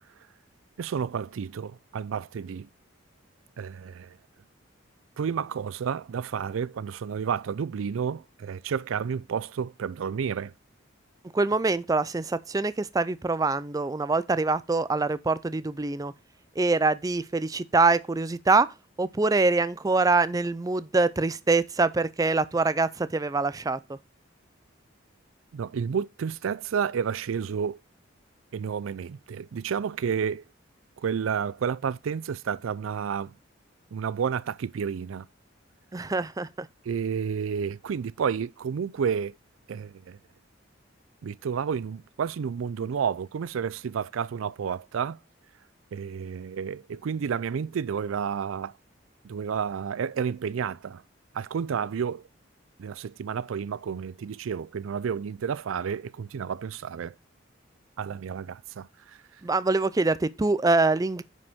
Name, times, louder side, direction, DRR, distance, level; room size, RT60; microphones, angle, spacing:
voice 1, 0.8-2.7 3.6-4.2 5.2-10.5 25.5-27.8 28.5-30.4 31.0-33.3 33.9-35.3 36.8-39.3 39.7-40.2 41.2-45.2 45.9-48.7 49.2-51.0 51.3-52.3 52.8-57.1 58.0-59.2, right 7 dB, 90° right, 0.4 m, -31 dB
voice 2, 11.3-16.1 16.6-18.7 19.0-24.0 35.9-36.7 59.4-61.2, right 3 dB, 20° right, 0.4 m, -24 dB
9.5 x 5.2 x 3.6 m
head